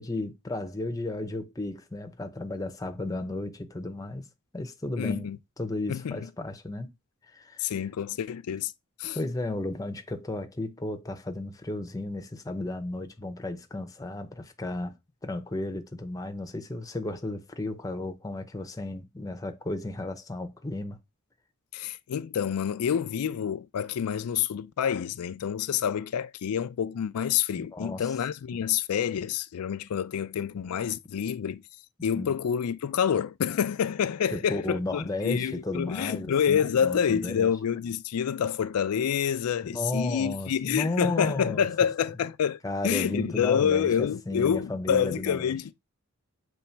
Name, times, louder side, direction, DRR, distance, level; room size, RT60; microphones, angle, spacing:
voice 1, 0.0-4.3 4.5-5.3 5.6-6.9 7.3-7.7 9.1-15.0 15.2-21.0 27.5-28.2 32.2-32.4 34.3-37.5 39.6-41.7 42.6-45.6, left 2 dB, 15° left, 0.6 m, -34 dB
voice 2, 5.0-5.4 5.9-6.3 7.6-8.7 9.0-9.2 21.7-31.6 32.0-45.7, left 8 dB, 85° left, 0.4 m, -28 dB
6.9 x 3.1 x 4.4 m
head